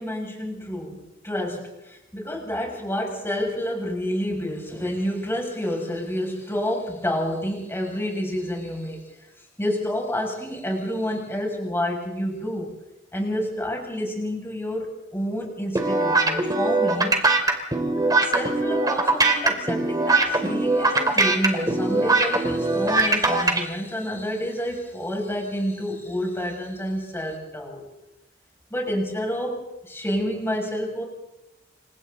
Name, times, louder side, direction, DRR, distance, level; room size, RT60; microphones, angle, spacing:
voice 1, 0.0-9.3 9.6-12.7 13.1-17.1 18.2-27.8 28.7-31.0, equal, 15° left, 0 dB, 6.4 m, -29 dB
sound 1, 15.7-23.6, right 2 dB, 20° right, 2.6 m, -21 dB
29.5 x 26.0 x 3.9 m, 0.92 s
head